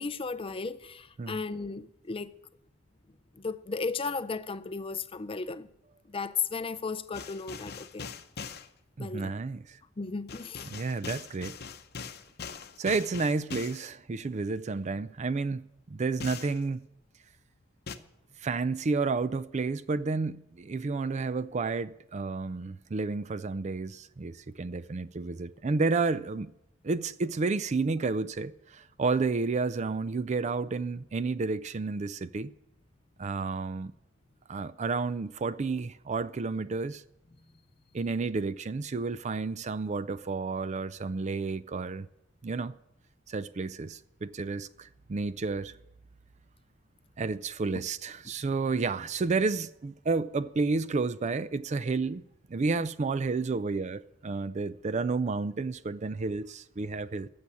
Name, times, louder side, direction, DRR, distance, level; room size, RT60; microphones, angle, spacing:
voice 1, 0.0-2.3 3.3-5.7 6.1-8.1 9.0-9.3 10.0-10.7 48.3-48.4, left 4 dB, 30° left, 0.5 m, -35 dB
sound 1, 7.1-8.7 10.3-13.9 16.2-16.6 17.9-18.0, left 6 dB, 55° left, 0.8 m, -41 dB
voice 2, 9.0-9.8 10.7-11.6 12.8-16.8 18.4-26.5 26.8-32.5 33.2-33.9 34.5-37.0 37.9-42.1 42.4-42.7 43.3-45.7 47.2-52.2 52.5-57.3, right 4 dB, 35° right, 0.4 m, -31 dB
14.5 x 7.0 x 8.6 m
head